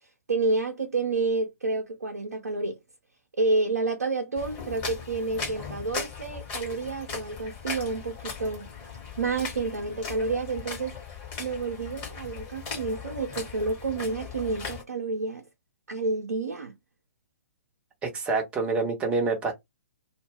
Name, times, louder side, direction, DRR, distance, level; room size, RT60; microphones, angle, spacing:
voice 1, 0.3-2.8 3.4-8.7 9.2-11.0 11.4-15.4 15.9-16.7, right 3 dB, 70° right, 0.6 m, -29 dB
sound 1, 4.4-14.8, left 5 dB, 25° left, 1.1 m, -38 dB
voice 2, 18.0-19.5, right 3 dB, 15° right, 0.7 m, -27 dB
2.1 x 2.1 x 3.3 m
figure-of-eight pair, 125°, 8 cm